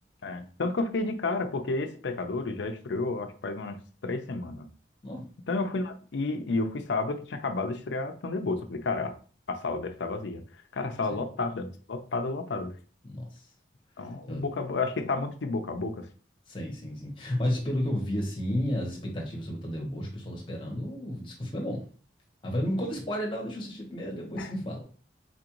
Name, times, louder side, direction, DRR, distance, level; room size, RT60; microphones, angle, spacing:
voice 1, 0.2-4.7 5.5-9.1 9.5-10.4 10.7-12.7 14.0-16.1 24.4-24.5, left 3 dB, 75° left, 0.5 m, -31 dB
voice 2, 13.0-13.4 14.3-14.4 16.5-21.8 22.4-24.8, equal, 30° left, 1.1 m, -32 dB
4.3 x 2.5 x 2.9 m
head